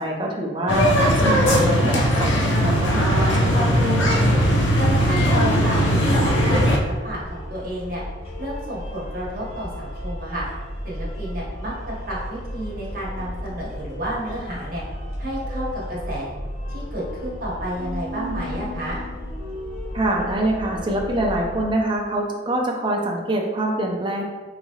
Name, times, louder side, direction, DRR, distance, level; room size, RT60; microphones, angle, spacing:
voice 1, 0.0-3.7 19.9-24.2, right 1 dB, 25° right, -1 dB, 0.5 m, -25 dB
sound 1, 0.7-6.8, equal, 75° left, 0.5 m, -19 dB
sound 2, 2.9-21.6, equal, 30° left, 0.6 m, -34 dB
voice 2, 4.8-8.0 8.4-10.4 10.8-14.8 15.2-16.3 16.7-19.0, equal, 50° right, -5 dB, 1.0 m, -31 dB
3.5 x 2.9 x 2.8 m, 1.3 s
head